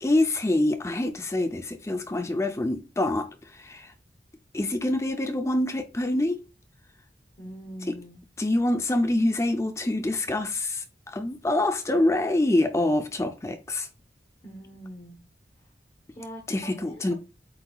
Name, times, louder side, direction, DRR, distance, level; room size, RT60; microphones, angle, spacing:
voice 1, 0.0-3.3 3.7-3.8 4.5-6.4 8.4-10.8 11.1-13.9 16.5-17.1, left 1 dB, 15° left, 0.4 m, -25 dB
voice 2, 7.4-8.2 14.4-15.2 16.1-17.1, equal, 35° left, 1.0 m, -43 dB
7.8 x 2.7 x 2.3 m
head